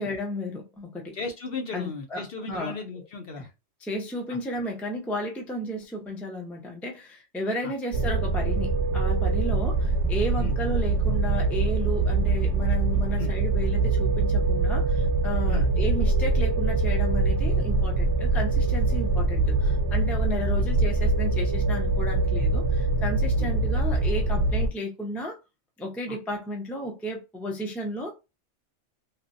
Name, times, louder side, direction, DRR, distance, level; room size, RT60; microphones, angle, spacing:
voice 1, 0.0-1.2 1.7-2.8 3.8-25.4 25.8-28.2, equal, ahead, 0.4 m, -33 dB
voice 2, 1.1-3.5 7.6-7.7 10.4-10.5 13.2-13.3 15.5-15.7 23.4-23.5 26.1-26.2, left 4 dB, 55° left, 0.8 m, -35 dB
sound 1, 7.9-24.7, right 3 dB, 75° right, 0.9 m, -24 dB
3.3 x 2.2 x 2.5 m
omnidirectional pair, 1.3 m